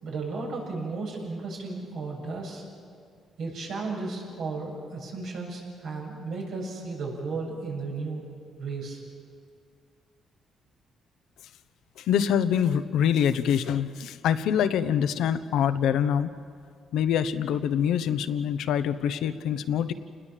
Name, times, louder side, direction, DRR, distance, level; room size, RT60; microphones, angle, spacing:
voice 1, 0.0-2.6 3.4-8.2 8.6-9.0, right 3 dB, 75° right, -2 dB, 7.3 m, -34 dB
voice 2, 12.0-16.3 16.9-19.9, left 8 dB, 80° left, 11 dB, 1.0 m, -25 dB
28.0 x 20.0 x 7.6 m, 2.2 s
cardioid pair, 90°, 0 cm